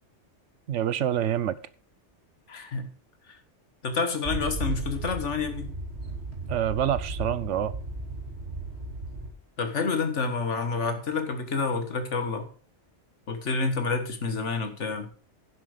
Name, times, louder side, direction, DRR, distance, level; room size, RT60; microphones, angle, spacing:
voice 1, 0.7-1.5 6.5-7.7, right 10 dB, 80° right, 1.0 m, -26 dB
voice 2, 2.5-2.9 3.8-5.7 9.6-12.5 13.3-15.1, left 4 dB, 75° left, 1.8 m, -28 dB
sound 1, 4.2-9.3, right 2 dB, 60° right, 2.7 m, -35 dB
10.0 x 7.7 x 5.0 m
omnidirectional pair, 1.2 m